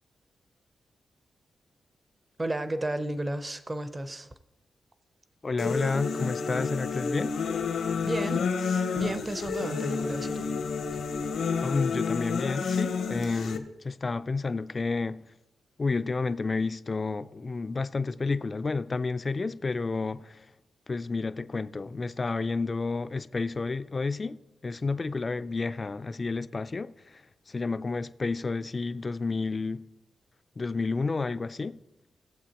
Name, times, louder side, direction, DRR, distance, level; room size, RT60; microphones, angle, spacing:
voice 1, 2.4-4.3 8.0-8.5 8.9-10.5, right 1 dB, 25° right, 0.7 m, -32 dB
voice 2, 5.4-7.4 11.6-15.3 15.8-20.5 20.9-29.9 30.6-31.8, left 3 dB, 35° left, 0.4 m, -30 dB
sound 1, 5.6-13.6, left 5 dB, 90° left, 1.0 m, -30 dB
18.0 x 7.6 x 2.9 m
cardioid pair, 95°, 0 cm